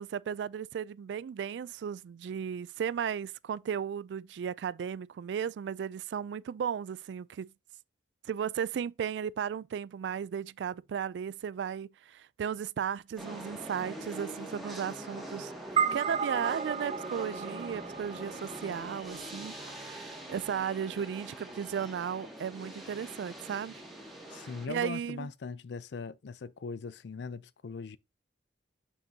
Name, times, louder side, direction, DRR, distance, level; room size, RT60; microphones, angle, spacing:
voice 1, 0.0-7.5 8.2-23.8 24.7-25.3, right 8 dB, 75° right, 0.3 m, -35 dB
sound 1, 13.2-24.7, right 1 dB, ahead, 2.3 m, -44 dB
sound 2, 15.8-20.3, right 6 dB, 35° right, 0.6 m, -34 dB
voice 2, 24.3-28.0, left 4 dB, 70° left, 0.4 m, -40 dB
6.7 x 6.5 x 2.8 m
head